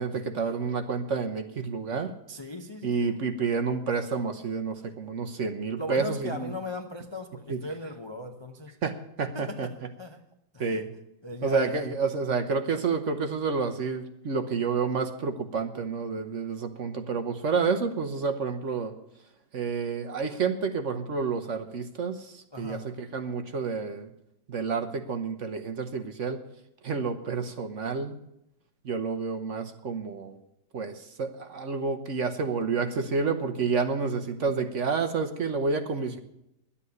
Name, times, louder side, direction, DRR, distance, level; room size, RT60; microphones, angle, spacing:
voice 1, 0.0-2.1 2.8-6.5 7.5-7.6 8.8-9.7 10.6-10.9 11.4-18.9 19.5-24.1 24.5-26.4 26.8-28.2 28.8-30.4 30.7-36.2, right 5 dB, 50° right, 7 dB, 1.2 m, -29 dB
voice 2, 2.3-3.2 5.8-8.8 9.3-10.2 10.5-10.8 11.2-12.0 22.5-22.9 35.9-36.2, left 2 dB, 25° left, 5 dB, 0.6 m, -38 dB
11.5 x 8.6 x 9.5 m, 0.81 s
omnidirectional pair, 1.8 m